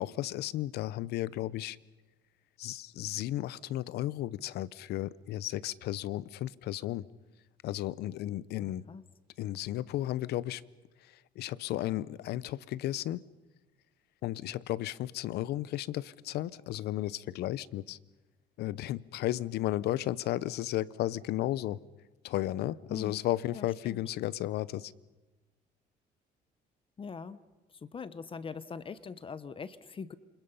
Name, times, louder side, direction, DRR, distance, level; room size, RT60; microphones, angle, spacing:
voice 1, 0.0-1.8 2.6-7.1 7.6-8.8 9.4-10.6 11.4-13.2 14.2-18.0 18.6-21.8 22.2-24.9, left 14 dB, 75° left, 19 dB, 0.8 m, -34 dB
voice 2, 8.6-9.0 22.9-23.2 23.5-24.0 27.0-27.4 27.7-30.1, left 5 dB, 30° left, 14 dB, 1.0 m, -42 dB
28.5 x 26.0 x 5.6 m, 1.1 s
cardioid pair, 110°, 17 cm